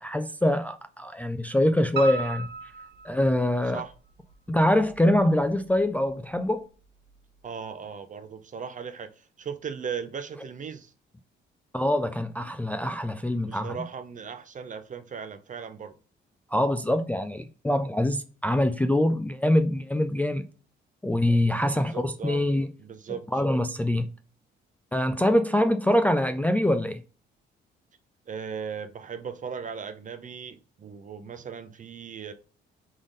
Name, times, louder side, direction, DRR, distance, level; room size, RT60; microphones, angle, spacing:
voice 1, 0.0-2.5 3.0-3.8 4.5-6.6 11.7-13.8 16.5-20.5 21.0-22.7 23.3-24.1 24.9-27.0, left 1 dB, 10° left, 0.3 m, -24 dB
Piano, 2.0-3.9 4.3-5.2 5.5-5.6 6.0-6.1 6.4-6.5, right 4 dB, 60° right, 1.5 m, -35 dB
voice 2, 7.4-9.1 9.4-10.9 13.5-15.9 21.7-22.4 22.8-23.2 28.3-32.3, right 6 dB, 40° right, 0.7 m, -37 dB
3.7 x 3.6 x 3.8 m
cardioid pair, 90°, 20 cm